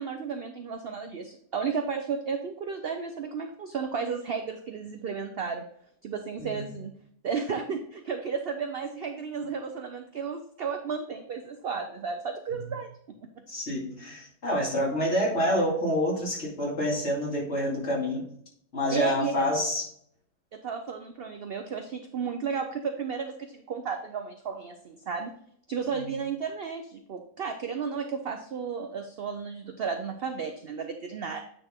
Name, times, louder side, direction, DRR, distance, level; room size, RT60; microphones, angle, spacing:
voice 1, 0.0-5.7 6.0-6.9 7.2-13.4 18.9-19.3 20.5-25.3 25.7-31.4, right 6 dB, 70° right, 6 dB, 0.5 m, -33 dB
voice 2, 13.5-18.2 18.7-19.8, left 1 dB, 45° left, -4 dB, 2.6 m, -27 dB
9.2 x 4.0 x 3.6 m, 0.67 s
omnidirectional pair, 1.7 m